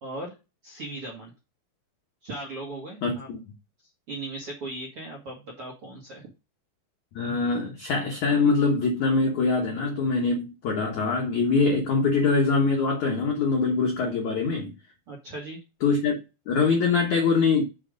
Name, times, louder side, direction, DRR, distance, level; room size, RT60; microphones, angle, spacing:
voice 1, 0.0-0.3 0.6-1.3 2.2-3.3 4.1-6.3 15.1-15.6, right 2 dB, 60° right, 1.4 m, -37 dB
voice 2, 3.0-3.4 7.1-14.7 15.8-16.1 16.5-17.6, left 4 dB, 90° left, 1.6 m, -23 dB
6.5 x 5.8 x 5.1 m
omnidirectional pair, 5.6 m